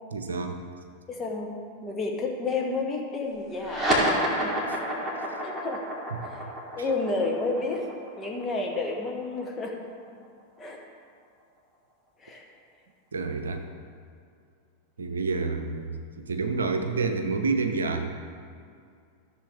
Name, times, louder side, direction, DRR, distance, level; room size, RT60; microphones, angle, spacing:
voice 1, 0.1-0.6 13.1-13.6 15.0-18.1, right 4 dB, 70° right, 6 dB, 0.8 m, -28 dB
voice 2, 1.1-1.5 1.8-4.6 5.4-5.8 6.2-6.4 6.8-7.8 8.2-9.7 10.6-10.8 12.2-12.4, left 3 dB, 20° left, 1 dB, 1.5 m, -31 dB
sound 1, 3.6-10.4, equal, 5° right, 2.6 m, -30 dB
14.5 x 6.9 x 3.5 m, 2.3 s
figure-of-eight pair, 90°, 0 cm